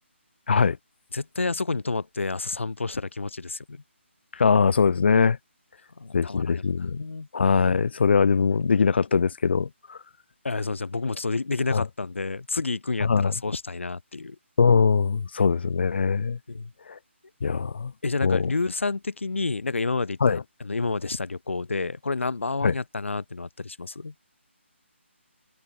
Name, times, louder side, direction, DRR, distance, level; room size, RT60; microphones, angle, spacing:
voice 1, 1.1-3.8 6.0-7.3 10.4-14.4 16.5-16.7 18.0-24.1, left 3 dB, 75° left, 5.8 m, -29 dB
voice 2, 4.4-5.4 6.1-7.0 7.3-10.0 11.7-11.8 13.0-13.3 14.6-16.4 16.9-17.0 17.4-17.9 18.2-18.5 20.2-20.4 22.6-22.7, left 5 dB, 55° left, 1.2 m, -21 dB
figure-of-eight pair, 155°, 7 cm